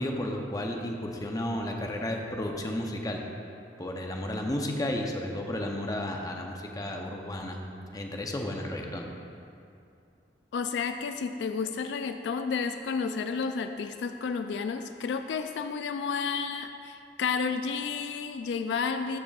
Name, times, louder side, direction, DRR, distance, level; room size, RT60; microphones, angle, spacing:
voice 1, 0.0-3.2 3.8-7.6 7.9-9.1, left 1 dB, 20° left, 2 dB, 0.6 m, -33 dB
voice 2, 10.5-19.2, left 5 dB, 75° left, 8 dB, 0.3 m, -31 dB
13.0 x 6.0 x 2.3 m, 2.5 s
head